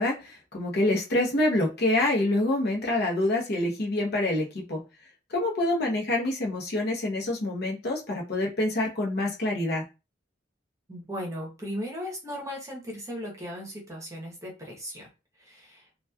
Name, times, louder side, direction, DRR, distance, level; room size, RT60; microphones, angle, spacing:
voice 1, 0.0-4.8 5.3-9.8, left 1 dB, 60° left, -1 dB, 0.8 m, -26 dB
voice 2, 10.9-15.1 15.4-15.9, equal, 15° right, -1 dB, 0.8 m, -37 dB
2.9 x 2.3 x 2.2 m, 0.29 s
head